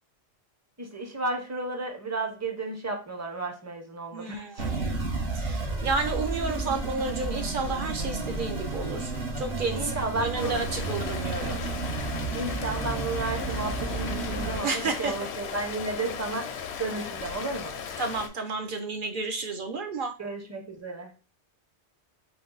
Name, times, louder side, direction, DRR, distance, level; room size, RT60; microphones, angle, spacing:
voice 1, 0.8-4.7 9.7-10.6 12.3-17.7 20.2-21.1, right 3 dB, 15° right, 3 dB, 0.6 m, -33 dB
voice 2, 4.1-5.1 5.3-11.6 14.6-15.2 18.0-20.1, right 4 dB, 55° right, 5 dB, 0.8 m, -31 dB
sound 1, 4.6-14.6, right 3 dB, 75° right, 1.6 m, -32 dB
Rain, 10.4-18.3, left 7 dB, 75° left, 0.8 m, -37 dB
4.6 x 2.2 x 3.9 m, 0.33 s
omnidirectional pair, 1.1 m